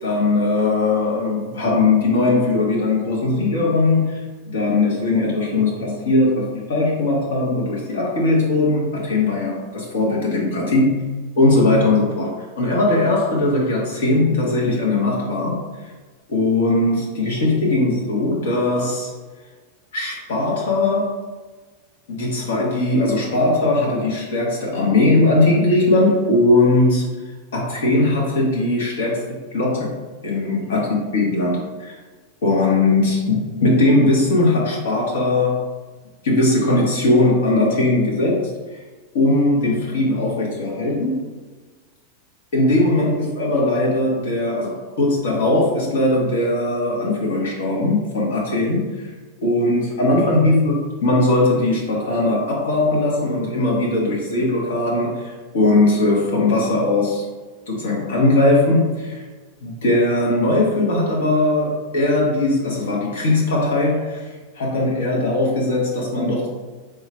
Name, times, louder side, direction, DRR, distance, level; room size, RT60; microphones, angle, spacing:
voice 1, 0.0-15.6 16.3-19.1 19.9-21.2 22.1-27.1 27.5-29.2 29.5-29.9 30.2-30.8 31.1-31.9 32.4-35.6 36.2-38.8 39.1-41.2 42.5-49.1 49.4-57.2 57.7-59.2 59.6-66.5, left 2 dB, 85° left, -2 dB, 1.2 m, -19 dB
3.6 x 2.4 x 4.3 m, 1.3 s
supercardioid pair, 180°, 0 cm